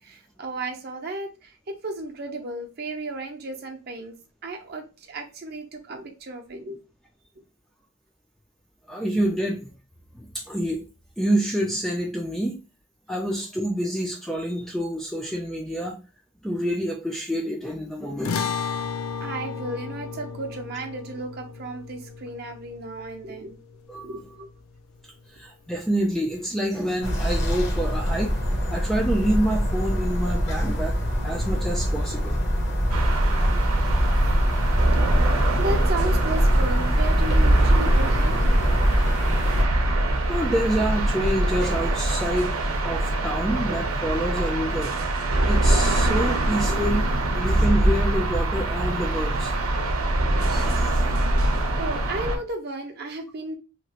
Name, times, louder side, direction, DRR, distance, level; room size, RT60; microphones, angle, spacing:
voice 1, 0.0-4.1 4.4-6.8 19.2-23.6 24.0-24.5 35.6-38.7 51.8-53.6, right 2 dB, 45° right, 2 dB, 0.6 m, -34 dB
voice 2, 8.9-9.7 10.1-10.9 11.2-12.6 13.1-16.0 16.4-18.5 23.9-24.2 25.3-28.3 28.7-31.0 31.2-32.4 40.3-44.9 45.5-49.5 50.5-51.0, right 1 dB, ahead, 0 dB, 0.3 m, -27 dB
sound 1, 18.2-24.8, left 6 dB, 80° left, 0.4 m, -34 dB
sound 2, 27.0-39.6, equal, 55° left, 0.7 m, -25 dB
sound 3, 32.9-52.4, right 1 dB, 85° right, 0.7 m, -23 dB
2.9 x 2.4 x 2.8 m, 0.31 s
head